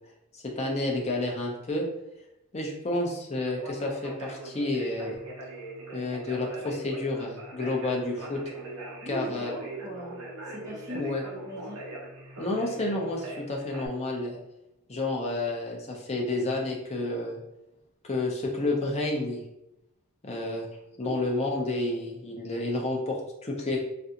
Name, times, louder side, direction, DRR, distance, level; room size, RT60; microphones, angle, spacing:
voice 1, 0.3-1.8 2.5-5.2 5.9-8.4 9.1-9.5 10.9-11.2 12.4-14.4 14.9-17.4 18.0-19.4 20.2-20.7 21.0-23.8, left 2 dB, 30° left, -1 dB, 0.5 m, -30 dB
Conversation, 3.4-13.9, right 2 dB, 75° right, 0.8 m, -41 dB
voice 2, 9.0-10.2 10.4-11.8 20.3-20.4 21.0-21.2, right 1 dB, 20° right, -9 dB, 0.9 m, -39 dB
3.3 x 2.5 x 2.8 m, 0.89 s
head